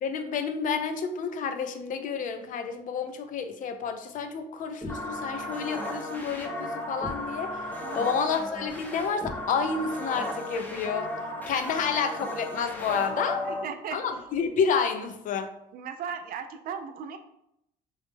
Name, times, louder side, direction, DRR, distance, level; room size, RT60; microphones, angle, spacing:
voice 1, 0.0-11.1 11.5-13.4 13.9-15.5, left 6 dB, 50° left, 7 dB, 0.4 m, -30 dB
sound 1, 4.8-13.6, left 1 dB, 10° left, 0.6 m, -35 dB
voice 2, 13.4-14.0 15.7-17.2, right 7 dB, 60° right, 7 dB, 0.4 m, -37 dB
3.0 x 2.0 x 3.2 m, 0.78 s
cardioid pair, 110°, 17 cm